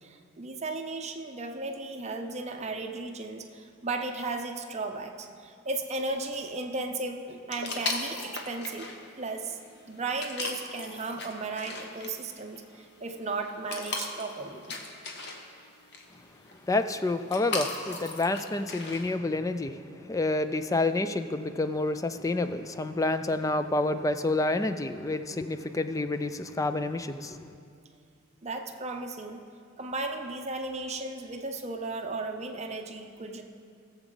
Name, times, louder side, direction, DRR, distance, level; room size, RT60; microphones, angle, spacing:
voice 1, 0.0-8.9 9.2-9.6 9.9-14.8 28.4-29.4 29.8-33.4, right 3 dB, 35° right, 4 dB, 0.7 m, -35 dB
sound 1, 7.5-19.1, left 3 dB, 55° left, 1.2 m, -39 dB
voice 2, 16.7-19.8 20.1-27.4, left 2 dB, 15° left, 10 dB, 0.4 m, -28 dB
19.0 x 7.2 x 3.9 m, 2.3 s
head